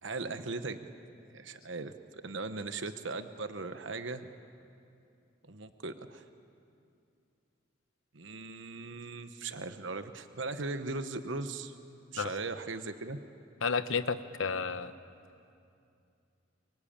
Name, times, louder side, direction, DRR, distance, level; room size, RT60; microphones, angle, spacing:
voice 1, 0.0-0.8 1.3-4.3 5.4-6.3 8.1-11.7 12.1-13.2, right 3 dB, 70° right, 9 dB, 1.1 m, -38 dB
voice 2, 13.6-14.9, left 5 dB, 85° left, 12 dB, 1.0 m, -31 dB
25.0 x 24.0 x 8.8 m, 2.5 s
head